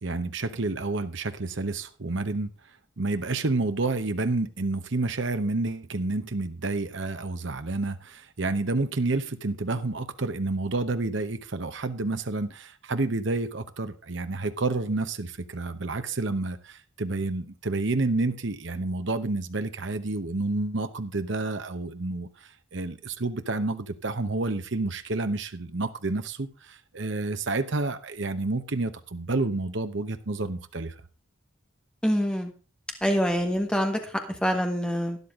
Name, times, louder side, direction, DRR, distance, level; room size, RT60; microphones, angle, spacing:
voice 1, 0.0-2.5 3.0-22.3 22.7-30.9, right 2 dB, 60° right, 9 dB, 0.9 m, -29 dB
voice 2, 32.0-32.5 33.0-35.2, equal, 5° left, 4 dB, 1.4 m, -25 dB
12.5 x 10.5 x 3.7 m, 0.34 s
head